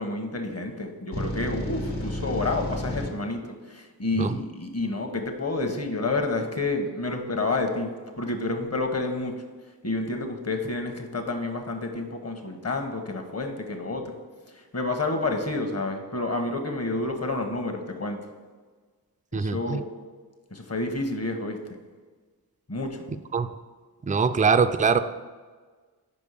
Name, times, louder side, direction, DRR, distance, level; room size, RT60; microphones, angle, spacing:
voice 1, 0.0-9.4 9.8-14.2 14.5-18.2 19.3-19.8 20.5-21.6 22.7-23.1, left 2 dB, 40° left, 4 dB, 1.2 m, -29 dB
sound 1, 1.1-3.1, left 1 dB, 75° left, 1.6 m, -31 dB
voice 2, 19.3-19.8 23.3-23.5 24.0-25.0, right 5 dB, 20° right, 10 dB, 0.4 m, -22 dB
5.4 x 5.2 x 6.5 m, 1.4 s
cardioid pair, 50°, 39 cm